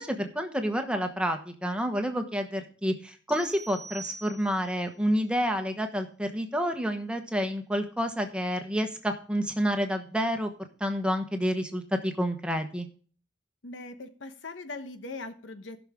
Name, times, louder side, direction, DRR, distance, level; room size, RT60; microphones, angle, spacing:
voice 1, 0.0-10.5 10.8-12.9, equal, 5° right, 5 dB, 1.1 m, -29 dB
sound 1, 3.3-4.8, right 3 dB, 85° left, 4.7 m, -44 dB
voice 2, 13.6-15.8, left 2 dB, 70° left, 9 dB, 1.0 m, -40 dB
15.5 x 6.2 x 3.6 m, 0.41 s
head